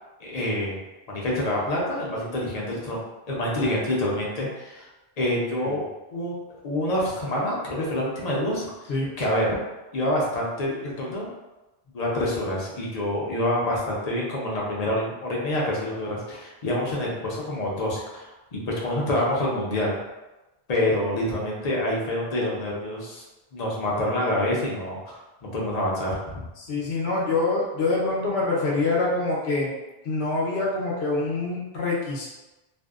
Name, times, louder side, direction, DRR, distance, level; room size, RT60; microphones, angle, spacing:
voice 1, 0.2-0.8 1.1-3.0 3.3-4.9 5.2-5.8 6.1-8.7 9.2-9.5 9.9-11.3 11.9-19.9 20.7-23.2 23.5-26.4, left 1 dB, 45° left, -4 dB, 0.6 m, -27 dB
voice 2, 26.6-29.7 30.0-32.3, left 3 dB, 80° left, -4 dB, 0.9 m, -25 dB
2.6 x 2.1 x 2.3 m, 1.1 s
omnidirectional pair, 1.1 m